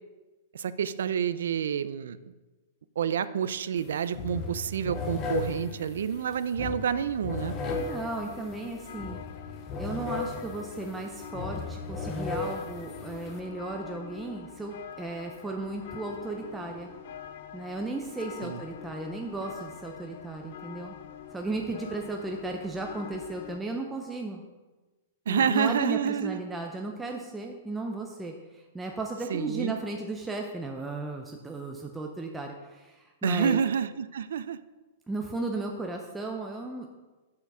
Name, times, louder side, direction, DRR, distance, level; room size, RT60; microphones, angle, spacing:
voice 1, 0.5-2.2 3.0-7.5 18.4-18.6 25.3-26.4 29.3-29.7 33.2-34.6, right 8 dB, 80° right, 14 dB, 0.4 m, -28 dB
sound 1, 3.8-13.4, left 4 dB, 25° left, 0.8 m, -36 dB
sound 2, 7.7-23.6, left 10 dB, 55° left, 0.4 m, -45 dB
voice 2, 7.8-9.2 9.8-16.9 17.5-21.0 21.3-24.4 25.3-33.6 35.1-36.9, right 2 dB, 5° right, 1 dB, 0.5 m, -35 dB
sound 3, 10.8-23.4, right 3 dB, 30° right, 2.4 m, -55 dB
6.6 x 5.8 x 6.0 m, 1.2 s
hypercardioid pair, 160°, 0 cm